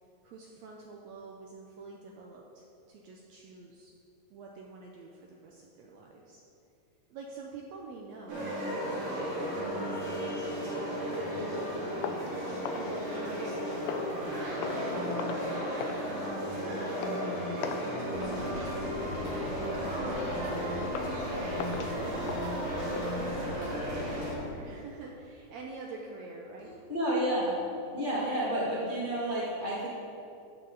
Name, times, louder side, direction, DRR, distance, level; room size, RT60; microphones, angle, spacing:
voice 1, 0.2-3.9 4.3-6.4 7.1-8.5 9.2-10.3 10.6-16.0 16.6-20.7 22.0-22.7 23.1-26.7, right 3 dB, 75° right, -1 dB, 1.7 m, -47 dB
sound 1, 8.3-24.3, equal, 55° right, 3.7 m, -34 dB
sound 2, 12.0-13.5 13.9-14.2 14.6-14.9 15.2-15.5 15.8-16.1 16.4-16.6 17.0-17.2 17.6-17.9 18.2-18.4 18.8-19.1 19.5-19.7 20.2-20.3 20.8-21.2 21.6-23.1, left 6 dB, 80° left, 2.1 m, -40 dB
sound 3, 18.1-24.5, left 2 dB, 50° left, 0.9 m, -41 dB
voice 2, 26.6-27.7 27.9-29.9, right 1 dB, 65° left, -7 dB, 0.5 m, -30 dB
12.0 x 7.2 x 3.9 m, 2.7 s
omnidirectional pair, 3.7 m